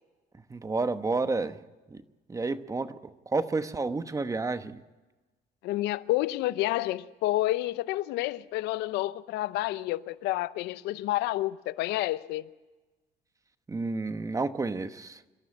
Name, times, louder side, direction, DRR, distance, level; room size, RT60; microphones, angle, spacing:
voice 1, 0.5-1.6 1.9-2.0 2.3-3.0 3.3-4.8 13.7-15.2, right 3 dB, 20° right, 1.1 m, -30 dB
voice 2, 5.6-12.4, left 16 dB, 90° left, 0.7 m, -29 dB
26.5 x 13.0 x 8.6 m
cardioid pair, 110°, 17 cm